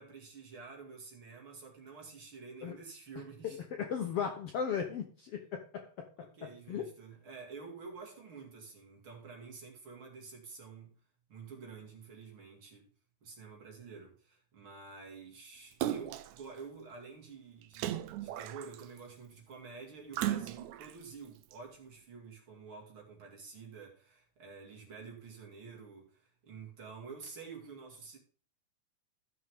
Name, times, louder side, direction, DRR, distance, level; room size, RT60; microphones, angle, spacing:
voice 1, 0.0-3.6 6.2-11.0 11.3-12.9 13.2-28.2, right 5 dB, 40° right, 2.9 m, -49 dB
voice 2, 3.4-6.8, left 7 dB, 65° left, 1.5 m, -37 dB
Splash splatter, 15.8-16.4 17.7-19.0 20.1-20.9 21.5-21.6, right 12 dB, 75° right, 1.9 m, -36 dB
14.0 x 6.3 x 3.6 m
omnidirectional pair, 3.6 m